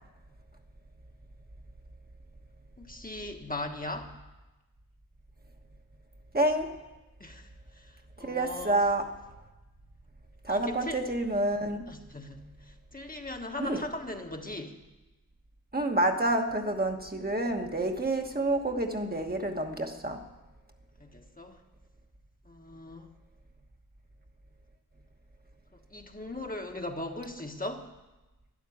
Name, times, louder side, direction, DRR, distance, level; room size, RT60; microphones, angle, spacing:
voice 1, 2.8-4.1 7.2-8.9 10.5-11.0 11.9-14.8 21.0-21.6 22.4-23.1 25.7-27.9, left 1 dB, 25° left, 3 dB, 1.3 m, -39 dB
voice 2, 6.3-6.8 8.2-9.0 10.4-11.9 13.6-13.8 15.7-20.2, right 1 dB, 25° right, 3 dB, 1.2 m, -28 dB
12.5 x 11.0 x 8.5 m, 1.1 s
wide cardioid pair, 90°, 36 cm